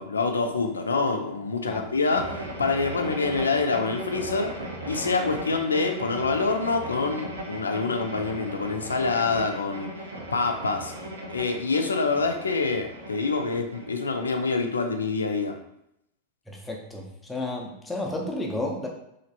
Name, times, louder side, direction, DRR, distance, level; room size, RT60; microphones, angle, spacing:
voice 1, 0.0-4.5 4.9-9.9 10.3-10.9 11.3-15.5, left 4 dB, 75° left, 4 dB, 0.4 m, -26 dB
sound 1, 2.1-14.8, right 1 dB, 75° right, 0.6 m, -37 dB
voice 2, 16.5-18.9, left 2 dB, 5° left, -1 dB, 0.6 m, -32 dB
3.0 x 2.4 x 2.7 m, 0.79 s
figure-of-eight pair, 90°, 0 cm